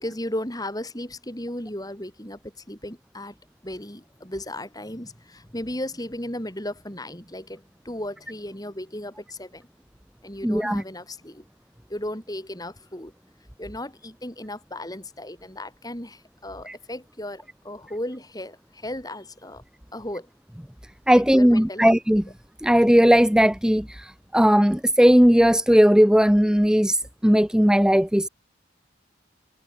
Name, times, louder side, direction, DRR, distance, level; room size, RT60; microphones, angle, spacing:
voice 1, 0.0-2.4 2.7-3.4 3.6-9.6 10.2-11.4 11.9-13.1 13.6-19.6 19.9-20.3 21.1-21.9, left 1 dB, 20° left, 5.6 m, -35 dB
voice 2, 10.4-10.8 16.7-16.8 21.1-22.2 22.6-28.3, equal, 5° right, 0.6 m, -18 dB
head